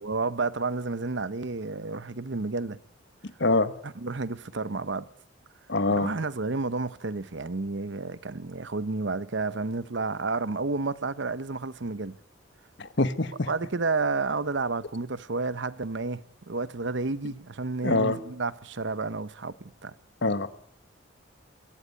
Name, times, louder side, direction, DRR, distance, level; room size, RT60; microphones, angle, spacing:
voice 1, 0.0-2.8 3.8-5.1 6.0-12.1 13.5-19.9, right 3 dB, 65° right, 0.9 m, -31 dB
voice 2, 3.4-3.7 5.7-6.1 12.8-13.5 17.8-18.2 20.2-20.5, left 2 dB, 65° left, 1.4 m, -24 dB
22.5 x 15.5 x 9.6 m
head